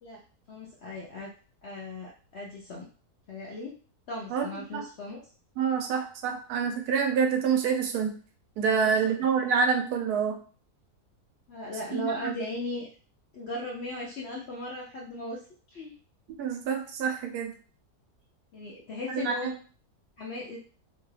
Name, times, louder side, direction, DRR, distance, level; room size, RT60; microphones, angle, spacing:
voice 1, 0.5-1.3 1.6-2.9 3.3-3.7 4.1-5.2 8.8-8.9 11.5-12.9 13.3-15.4 15.7-15.9 18.5-19.5 20.2-20.6, left 1 dB, 65° left, -4 dB, 0.6 m, -37 dB
voice 2, 5.6-8.1 8.6-10.4 11.9-12.4 16.4-17.5 19.1-19.5, right 6 dB, 75° right, 4 dB, 1.1 m, -27 dB
2.9 x 2.2 x 3.1 m, 0.40 s
omnidirectional pair, 1.7 m